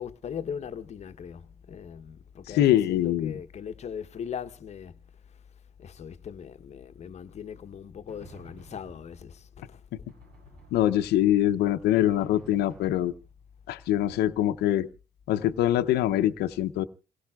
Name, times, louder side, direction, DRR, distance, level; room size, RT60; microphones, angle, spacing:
voice 1, 0.0-4.9 5.8-9.8, left 7 dB, 40° left, 0.9 m, -39 dB
voice 2, 2.5-3.4 10.7-13.1 13.7-14.9 15.3-16.9, left 12 dB, 75° left, 0.7 m, -24 dB
Drum, 7.6-9.5 10.1-11.4 12.1-13.6, right 2 dB, 80° right, 7.3 m, -53 dB
27.0 x 16.5 x 2.4 m
cardioid pair, 110°, 17 cm